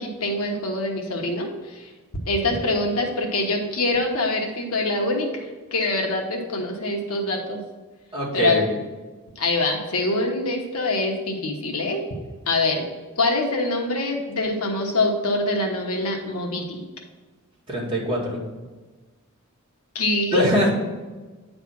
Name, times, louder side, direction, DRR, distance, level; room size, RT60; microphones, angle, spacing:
voice 1, 0.0-1.9 2.3-7.6 8.3-8.6 9.4-12.0 12.5-12.8 13.2-16.8 19.9-20.4, left 2 dB, 70° left, 1 dB, 1.2 m, -24 dB
voice 2, 8.1-8.8 17.7-18.4 20.3-20.7, right 1 dB, 25° right, -6 dB, 2.2 m, -23 dB
9.4 x 3.4 x 5.9 m, 1.3 s
head